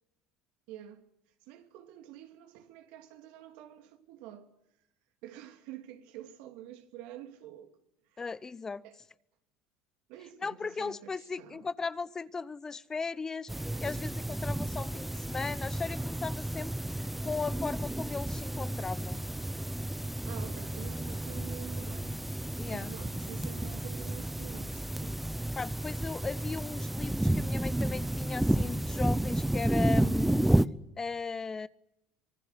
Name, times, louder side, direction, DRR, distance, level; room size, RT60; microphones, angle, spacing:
voice 1, 0.7-1.0 1.4-4.5 5.2-7.7 8.1-8.2 8.8-9.0 10.1-11.7 20.2-22.2 22.7-25.2, right 12 dB, 75° right, 2.7 m, -48 dB
voice 2, 8.2-8.8 10.4-13.5 13.8-19.2 22.6-22.9 25.6-30.5 31.0-31.7, left 4 dB, 25° left, 0.8 m, -37 dB
sound 1, 13.5-30.7, right 1 dB, 5° right, 0.9 m, -31 dB
25.5 x 19.0 x 8.1 m
supercardioid pair, 90°, 2 cm